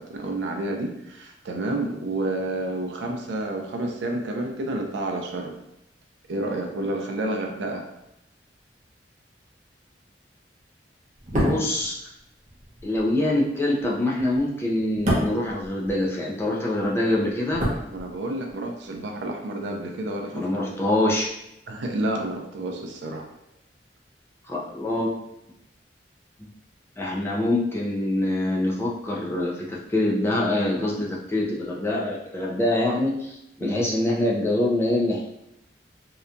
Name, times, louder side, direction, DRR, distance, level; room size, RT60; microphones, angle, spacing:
voice 1, 0.0-5.5 6.3-7.8 17.9-20.5 21.7-23.2 33.6-33.8, right 1 dB, 80° right, 2 dB, 0.4 m, -30 dB
sound 1, 11.2-16.5 16.7-18.6 18.8-19.0, equal, 45° right, 0.7 m, -29 dB
voice 2, 11.3-12.0 12.8-17.6 20.3-21.3 24.5-25.1 27.0-35.2, left 1 dB, 15° left, -4 dB, 0.4 m, -25 dB
2.8 x 2.2 x 2.5 m, 0.82 s
head